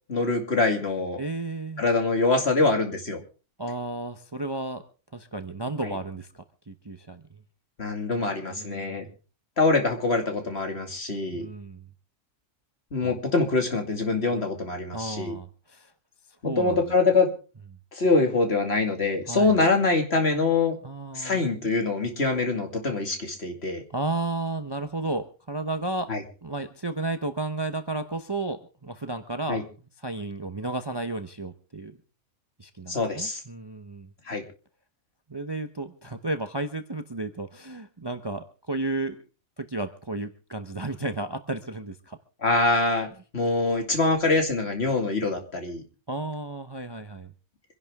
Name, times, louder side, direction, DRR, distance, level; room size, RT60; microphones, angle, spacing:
voice 1, 0.1-1.2 1.8-3.2 5.8-6.0 7.8-9.1 9.6-11.5 12.9-15.4 16.4-17.3 17.9-20.8 21.1-23.8 26.1-26.2 29.5-29.6 32.9-33.4 34.3-34.4 42.4-45.8, left 3 dB, 50° left, 4 dB, 2.6 m, -24 dB
voice 2, 1.2-1.8 3.6-4.8 5.1-6.3 6.7-7.2 8.4-9.1 11.3-11.8 13.0-13.2 14.9-15.9 16.4-16.9 19.3-19.5 20.8-21.4 23.9-26.1 26.4-29.6 30.0-32.0 32.6-34.1 35.3-39.2 39.6-42.2 46.1-47.3, right 2 dB, 20° right, 8 dB, 0.9 m, -33 dB
26.0 x 11.0 x 3.6 m, 0.37 s
omnidirectional pair, 1.4 m